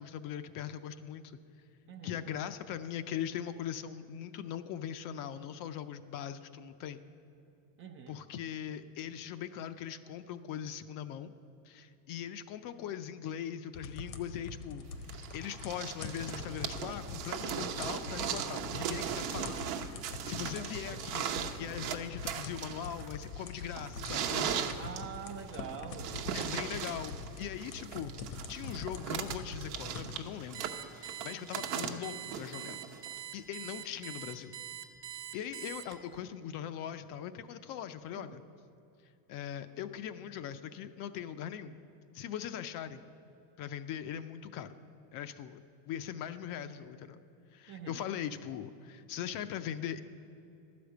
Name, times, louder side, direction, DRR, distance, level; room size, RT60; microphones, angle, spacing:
voice 1, 0.0-1.4 2.0-7.0 8.1-11.3 11.6-19.6 20.2-21.3 21.6-24.7 26.3-28.1 28.5-30.7 30.9-32.8 33.3-34.5 35.3-38.4 39.3-41.8 42.1-43.0 43.6-44.8 45.1-45.6 45.9-47.2 47.5-50.0, left 9 dB, 45° left, 11 dB, 0.5 m, -40 dB
voice 2, 1.9-2.3 7.8-8.2 20.4-20.5 20.9-21.0 21.6-21.7 24.8-26.3 31.4-31.8 38.2-38.4 47.7-48.1, right 7 dB, 30° right, 6 dB, 0.4 m, -46 dB
sound 1, 13.7-30.4, left 4 dB, 80° left, 1.1 m, -45 dB
sound 2, 15.1-33.2 34.2-34.3, right 8 dB, 75° right, 1.0 m, -38 dB
Alarm, 30.5-36.2, right 11 dB, 50° right, 1.2 m, -44 dB
12.0 x 5.1 x 8.0 m, 2.9 s
supercardioid pair, 125°, 50 cm